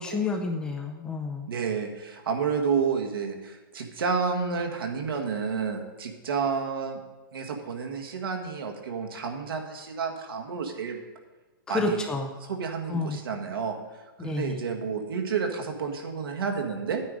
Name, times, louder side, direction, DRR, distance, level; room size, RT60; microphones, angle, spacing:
voice 1, 0.0-1.5 11.7-12.3 12.9-13.2 14.2-14.6, left 3 dB, 5° left, 3 dB, 0.5 m, -30 dB
voice 2, 1.5-7.0 7.3-11.0 11.7-12.1 12.5-13.8 14.2-17.0, right 5 dB, 75° right, 2 dB, 1.7 m, -30 dB
9.4 x 9.3 x 5.1 m, 1.2 s
hypercardioid pair, 170°, 12 cm